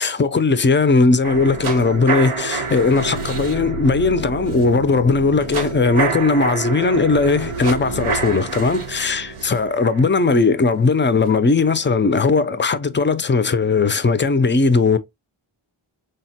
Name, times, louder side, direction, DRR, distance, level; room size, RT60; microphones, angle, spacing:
voice 1, 0.0-15.0, left 4 dB, 25° left, 0.3 m, -18 dB
sound 1, 1.2-11.3 11.7-11.8, right 4 dB, 85° right, 0.8 m, -28 dB
3.8 x 2.1 x 2.7 m
wide cardioid pair, 60°, 49 cm